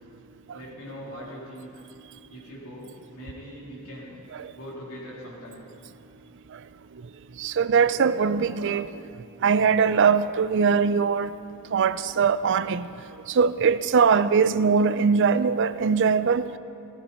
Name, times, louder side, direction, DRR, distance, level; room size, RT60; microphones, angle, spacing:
voice 1, 0.5-1.8 2.3-4.1 4.5-5.6 7.5-7.6, equal, 70° left, 3.8 m, -41 dB
voice 2, 7.4-8.9 9.4-11.3 11.7-12.9 13.3-16.5, right 6 dB, 55° right, 0.4 m, -21 dB
14.5 x 14.5 x 4.4 m
head